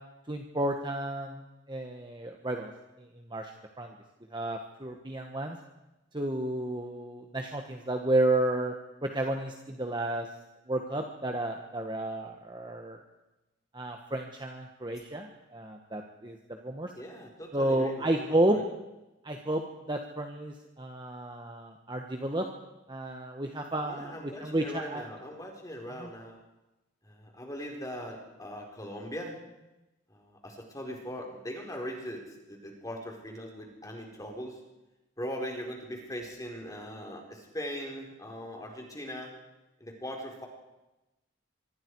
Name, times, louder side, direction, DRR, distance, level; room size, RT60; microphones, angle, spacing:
voice 1, 0.3-1.4 1.7-2.7 3.3-3.5 3.8-3.9 4.3-5.6 6.1-8.7 9.0-10.3 10.7-13.0 13.7-16.4 16.6-16.9 17.5-18.6 19.2-22.5 22.9-25.0 26.0-26.1, right 1 dB, 25° right, 3 dB, 1.5 m, -31 dB
voice 2, 17.0-18.6 23.8-26.4 27.0-29.4 30.1-34.6 35.2-39.3 39.8-40.5, equal, 20° left, 1 dB, 4.3 m, -40 dB
25.0 x 24.0 x 4.8 m, 0.99 s
head